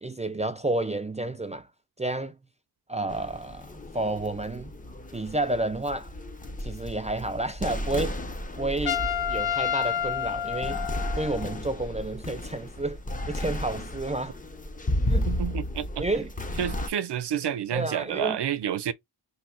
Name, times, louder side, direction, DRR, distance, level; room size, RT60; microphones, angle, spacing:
voice 1, 0.0-1.7 2.0-2.4 2.9-4.7 5.1-6.1 6.6-8.2 8.6-10.8 11.2-13.0 13.3-14.4 15.1-15.3 16.0-16.3 17.7-18.4, right 2 dB, 20° right, 0.3 m, -30 dB
sound 1, 3.1-16.9, left 1 dB, 20° left, 0.6 m, -33 dB
Trumpet, 8.9-11.5, left 9 dB, 65° left, 0.7 m, -29 dB
voice 2, 15.3-16.1 16.6-18.9, right 9 dB, 85° right, 0.7 m, -29 dB
3.5 x 2.7 x 4.3 m
wide cardioid pair, 140°, 40 cm